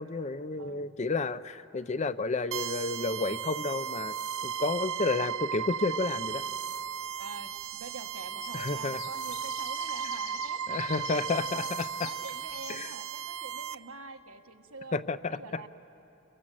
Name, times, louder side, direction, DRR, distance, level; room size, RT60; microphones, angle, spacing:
voice 1, 0.0-4.1 4.4-6.4 8.5-9.0 10.7-12.1 12.7-12.9 14.9-15.4, left 3 dB, 35° left, 13 dB, 0.5 m, -31 dB
voice 2, 0.6-0.9 7.2-11.7 12.0-15.0 15.3-15.7, right 3 dB, 85° right, 6 dB, 1.3 m, -46 dB
sound 1, 2.5-13.7, right 8 dB, 65° right, 0.6 m, -35 dB
sound 2, 5.5-12.7, left 8 dB, 65° left, 1.5 m, -48 dB
29.5 x 23.0 x 7.6 m, 2.8 s
head